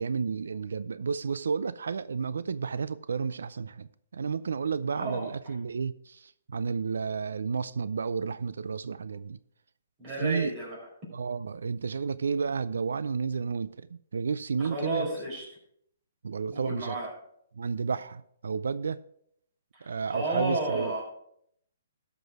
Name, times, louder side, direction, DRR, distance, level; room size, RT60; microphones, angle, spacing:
voice 1, 0.0-9.4 10.2-10.5 11.1-15.2 16.2-17.0 17.5-19.0 19.8-20.9, right 5 dB, 80° right, 0.4 m, -31 dB
voice 2, 10.0-10.8 14.6-15.4 16.5-17.1 19.7-21.0, right 2 dB, 25° right, 4.7 m, -32 dB
13.0 x 6.0 x 4.7 m
hypercardioid pair, 150°, 0 cm